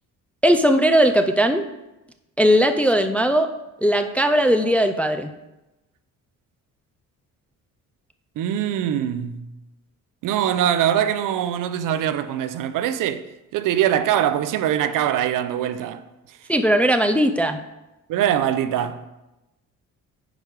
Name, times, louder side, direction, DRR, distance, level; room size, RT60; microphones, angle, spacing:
voice 1, 0.4-1.6 2.4-3.5 3.8-5.3 16.5-17.6, equal, 5° left, 0.3 m, -18 dB
voice 2, 8.4-9.5 10.2-13.3 13.5-16.0 18.1-19.1, right 10 dB, 70° right, 0.7 m, -23 dB
9.8 x 5.1 x 4.7 m
cardioid pair, 145°, 33 cm